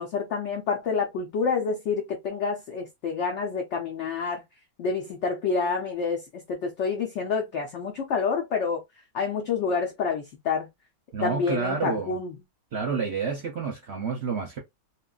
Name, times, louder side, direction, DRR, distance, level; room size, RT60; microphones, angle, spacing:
voice 1, 0.0-4.4 4.8-8.8 9.1-10.7 11.2-12.3, left 5 dB, 60° left, 0.8 m, -28 dB
voice 2, 11.1-12.1 12.7-14.6, right 5 dB, 60° right, 0.8 m, -29 dB
2.9 x 2.5 x 2.3 m
omnidirectional pair, 1.5 m